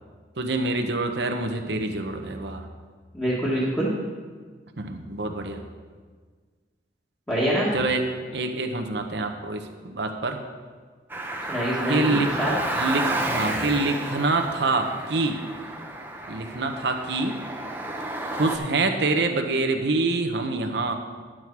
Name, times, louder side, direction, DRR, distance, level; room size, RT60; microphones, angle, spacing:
voice 1, 0.4-2.7 4.8-5.6 7.7-8.0 8.3-10.4 11.9-12.3 12.7-15.4 16.3-17.4 18.3-21.0, right 3 dB, 65° right, 4 dB, 0.9 m, -26 dB
voice 2, 3.1-3.9 7.3-7.7 11.5-12.5, equal, 10° left, -8 dB, 1.7 m, -25 dB
Car, 11.1-18.6, right 1 dB, 10° right, 0.8 m, -31 dB
11.0 x 7.5 x 4.7 m, 1.6 s
head